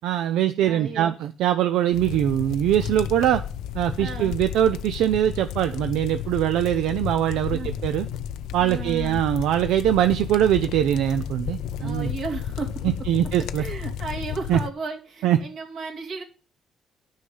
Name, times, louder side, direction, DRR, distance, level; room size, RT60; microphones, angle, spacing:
voice 1, 0.0-3.4 3.7-8.1 8.5-12.1 13.1-13.6 14.5-14.6 15.2-15.4, right 11 dB, 90° right, 9 dB, 0.5 m, -22 dB
voice 2, 0.6-1.1 4.0-4.3 7.5-7.7 8.6-9.2 11.8-12.8 13.6-16.2, right 4 dB, 65° right, 2 dB, 2.5 m, -34 dB
sound 1, 1.9-14.7, left 9 dB, 90° left, 0.5 m, -33 dB
11.0 x 6.4 x 5.5 m, 0.38 s
cardioid pair, 90°, 0 cm